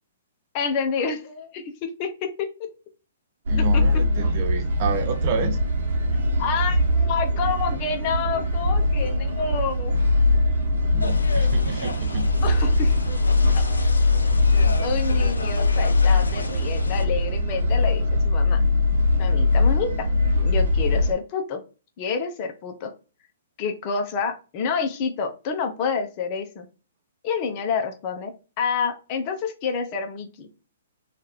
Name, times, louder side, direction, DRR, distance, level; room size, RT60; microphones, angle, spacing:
voice 1, 0.5-2.7 3.5-4.0 6.4-10.0 12.4-13.0 13.5-13.7 14.5-18.6 19.2-20.1 20.4-21.6 22.0-22.9 23.6-26.7 27.2-30.5, left 5 dB, 40° left, 0.8 m, -28 dB
voice 2, 3.5-5.6 10.9-12.3, right 6 dB, 40° right, 0.6 m, -30 dB
sound 1, 3.5-21.1, left 2 dB, 65° right, 0.9 m, -21 dB
sound 2, 11.0-17.1, left 3 dB, 90° left, 0.6 m, -34 dB
3.2 x 2.5 x 4.3 m
hypercardioid pair, 125°, 0 cm